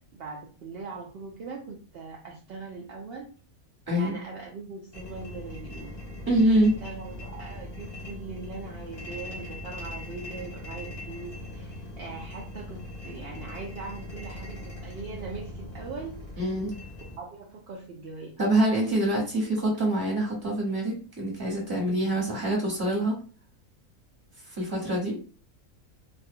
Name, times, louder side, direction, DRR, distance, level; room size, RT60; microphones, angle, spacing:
voice 1, 0.2-3.3 3.9-5.9 6.8-16.2 17.2-18.3, right 4 dB, 70° right, -2 dB, 0.5 m, -41 dB
sound 1, 4.9-17.2, left 1 dB, 35° left, 0.5 m, -40 dB
voice 2, 6.3-6.7 16.4-16.7 18.4-23.1 24.5-25.1, right 1 dB, 15° right, -4 dB, 1.0 m, -25 dB
2.4 x 2.2 x 2.6 m, 0.38 s
omnidirectional pair, 1.5 m